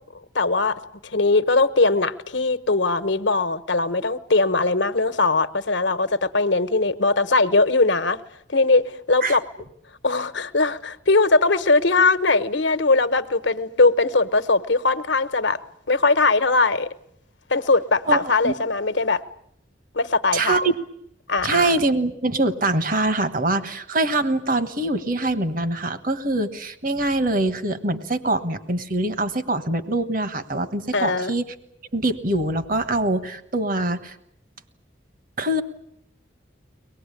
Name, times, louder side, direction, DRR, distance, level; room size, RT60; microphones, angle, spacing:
voice 1, 0.3-0.8 1.1-8.2 8.5-9.4 10.0-15.6 15.9-16.9 17.5-19.2 19.9-20.6 21.3-21.7 30.9-31.3, left 3 dB, 75° left, 11 dB, 1.2 m, -20 dB
voice 2, 18.1-18.5 20.3-20.8 21.4-31.4 31.9-34.1 35.4-35.6, right 2 dB, 50° right, 11 dB, 1.4 m, -24 dB
24.0 x 19.5 x 9.9 m, 0.73 s
head